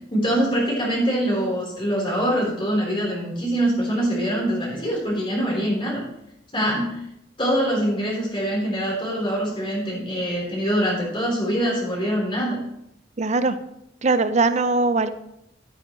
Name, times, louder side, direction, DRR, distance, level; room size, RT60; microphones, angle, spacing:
voice 1, 0.1-6.0 6.5-7.0 7.4-12.6, equal, 25° left, -4 dB, 3.8 m, -24 dB
voice 2, 13.2-13.6 14.0-15.1, right 3 dB, 35° right, 12 dB, 0.5 m, -20 dB
12.5 x 9.1 x 3.1 m, 0.81 s
head